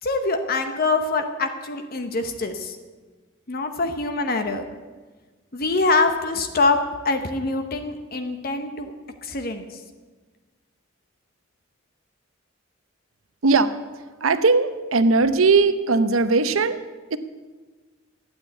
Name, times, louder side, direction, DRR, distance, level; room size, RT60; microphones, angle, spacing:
voice 1, 0.0-2.8 3.5-4.6 5.5-6.8 7.0-8.9 9.2-9.7, left 3 dB, 45° left, 7 dB, 0.9 m, -24 dB
voice 2, 13.4-13.8 14.2-16.8 17.1-17.2, right 4 dB, 85° right, 12 dB, 0.8 m, -19 dB
12.5 x 9.0 x 8.3 m, 1.3 s
head